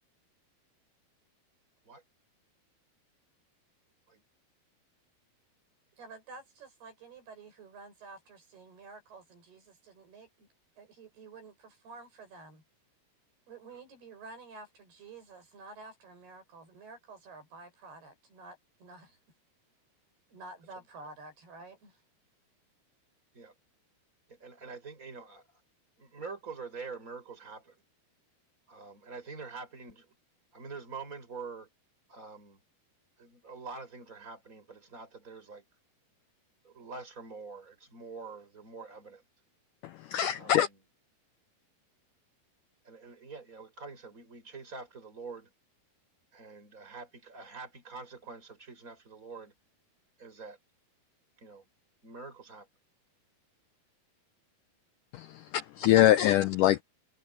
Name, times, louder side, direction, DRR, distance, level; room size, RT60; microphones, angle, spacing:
voice 1, 6.0-10.5 10.8-12.6 13.5-19.2 20.3-22.0, right 3 dB, 80° right, 9.4 m, -50 dB
voice 2, 24.3-25.4 26.0-27.8 28.7-30.1 30.5-31.7 32.1-32.6 33.2-35.7 36.6-39.2 40.3-40.8 42.8-45.5 46.3-49.5 50.2-50.6 51.4-51.6 52.0-52.7, right 4 dB, 20° right, 5.7 m, -45 dB
voice 3, 40.1-40.7 55.2-55.3 55.5-56.8, left 13 dB, 85° left, 1.8 m, -23 dB
omnidirectional pair, 4.5 m